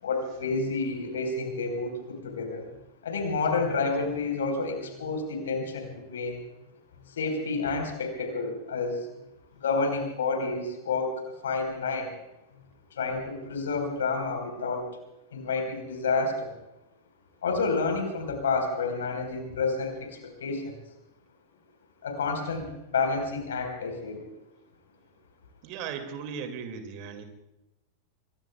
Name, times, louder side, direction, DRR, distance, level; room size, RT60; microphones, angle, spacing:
voice 1, 0.0-2.7 3.0-6.4 7.1-9.1 9.6-11.1 11.4-12.1 12.9-14.9 15.3-16.6 17.4-20.8 22.0-24.2, left 4 dB, 65° left, 4 dB, 4.4 m, -29 dB
voice 2, 25.6-27.2, right 6 dB, 45° right, 8 dB, 2.3 m, -37 dB
26.0 x 22.5 x 2.3 m, 0.93 s
figure-of-eight pair, 90°, 0 cm